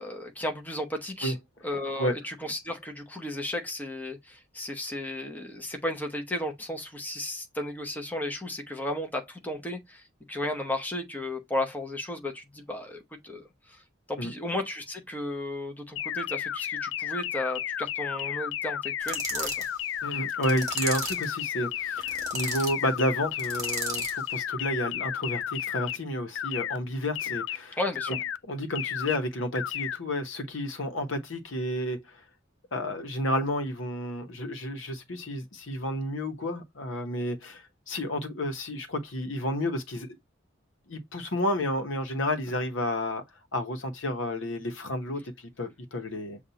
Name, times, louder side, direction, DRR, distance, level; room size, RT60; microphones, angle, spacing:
voice 1, 0.0-1.3 1.6-10.0 10.3-13.8 14.1-19.5 27.8-28.2, left 1 dB, 10° left, 0.9 m, -34 dB
sound 1, 16.0-26.0 26.4-26.8 27.2-27.6 28.0-28.4 28.8-29.2 29.6-30.0, left 10 dB, 70° left, 0.3 m, -32 dB
sound 2, 19.0-19.7 20.4-21.3 22.0-22.7 23.4-24.2, right 4 dB, 20° right, 1.7 m, -35 dB
voice 2, 20.0-27.8 28.1-28.2 28.4-32.2 32.7-40.1 40.9-43.2 43.5-46.4, left 1 dB, 85° left, 1.0 m, -31 dB
6.9 x 2.4 x 2.8 m
head